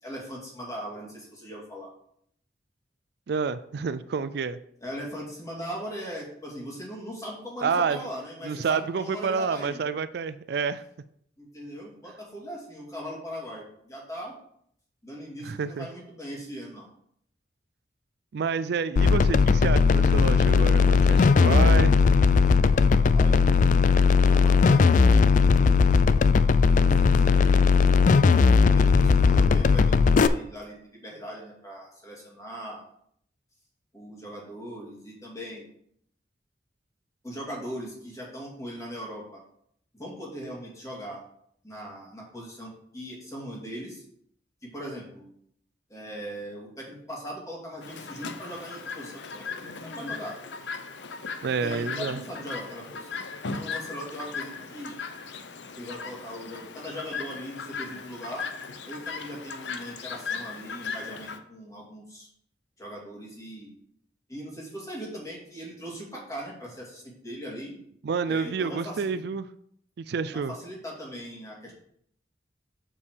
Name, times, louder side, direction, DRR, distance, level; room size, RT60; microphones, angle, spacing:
voice 1, 0.0-1.9 4.8-9.8 11.4-14.4 15.0-16.9 23.1-23.4 24.2-25.8 26.8-27.7 28.2-32.8 33.9-35.7 37.2-39.4 39.9-41.2 41.6-44.0 44.6-45.3 45.9-50.4 51.5-53.2 53.5-55.0 55.8-58.4 58.9-62.3 62.8-63.7 64.3-67.8 68.3-69.2 70.3-71.7, equal, 20° left, -3 dB, 2.3 m, -39 dB
voice 2, 3.3-4.6 7.6-8.0 8.4-10.8 15.4-15.9 18.3-21.9 51.4-52.2 68.0-69.5 70.0-70.5, right 5 dB, 65° right, 13 dB, 0.4 m, -28 dB
sound 1, 19.0-30.3, left 5 dB, 45° left, 0.3 m, -18 dB
Chirp tweet, 47.8-61.4, left 5 dB, 85° left, 0.7 m, -37 dB
7.0 x 5.7 x 4.7 m, 0.67 s
head